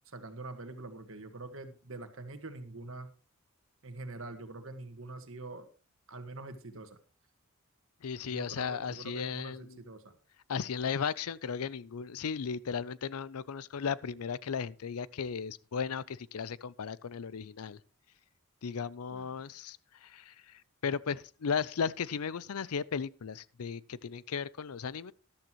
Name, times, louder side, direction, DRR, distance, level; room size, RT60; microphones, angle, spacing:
voice 1, 0.1-3.1 3.8-5.7 6.1-7.0 8.2-10.2 19.1-19.3, right 2 dB, 60° right, 1.6 m, -45 dB
voice 2, 8.0-9.8 10.5-17.8 18.6-25.1, left 6 dB, 80° left, 0.5 m, -36 dB
13.5 x 12.0 x 3.0 m
head